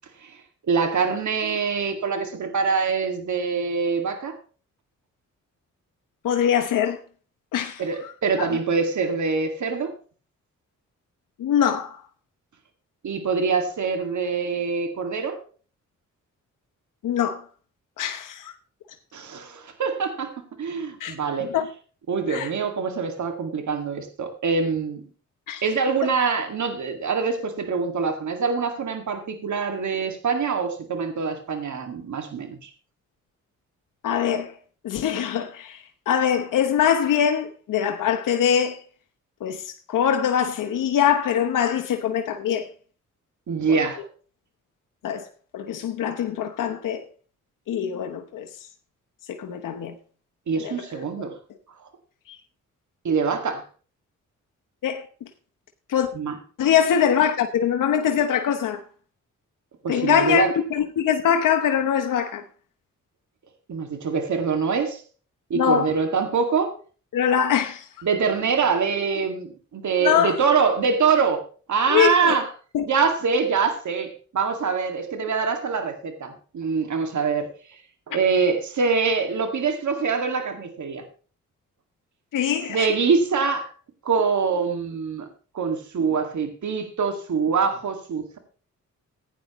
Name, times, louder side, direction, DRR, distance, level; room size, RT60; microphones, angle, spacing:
voice 1, 0.7-4.4 7.8-9.9 13.0-15.4 19.1-20.3 20.6-21.5 22.1-25.0 25.6-32.7 43.5-44.0 50.5-51.3 53.0-53.6 56.1-56.4 59.8-60.5 63.7-65.0 65.5-66.7 68.0-71.4 71.7-72.5 72.9-77.5 78.1-81.0 82.7-83.7 84.0-85.3 85.5-88.4, right 5 dB, 65° right, 2.1 m, -24 dB
voice 2, 6.2-7.0 7.5-7.8 8.4-8.5 11.4-12.0 17.0-17.4 18.0-18.5 21.0-21.1 21.4-21.7 22.3-22.5 25.5-25.6 34.0-34.5 34.8-38.8 39.4-42.7 43.7-43.8 45.0-45.3 45.5-47.0 47.7-48.5 49.3-49.9 50.6-50.8 51.2-51.3 52.3-52.4 54.8-55.0 55.9-56.1 56.6-58.8 59.9-62.4 65.5-65.9 67.1-67.9 70.0-70.4 71.9-72.4 72.7-72.9 82.3-82.9, left 8 dB, 85° left, 0.9 m, -23 dB
15.5 x 9.3 x 3.0 m
cardioid pair, 65°, 31 cm